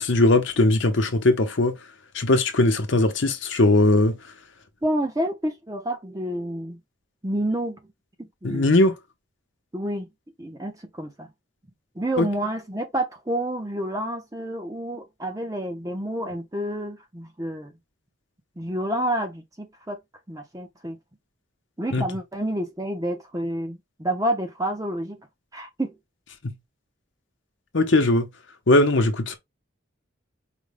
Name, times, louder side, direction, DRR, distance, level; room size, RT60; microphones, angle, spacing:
voice 1, 0.0-1.7 2.1-4.1 8.4-8.9 12.2-12.3 21.9-22.0 26.4-26.5 27.7-28.3 28.7-29.4, left 2 dB, 60° left, 0.8 m, -19 dB
voice 2, 4.8-6.8 7.2-7.8 8.2-8.7 9.7-10.1 10.4-11.3 12.0-17.7 18.6-20.0 20.3-21.0 21.8-25.2 25.5-25.9, right 1 dB, 15° right, 0.7 m, -29 dB
5.1 x 2.3 x 3.4 m
head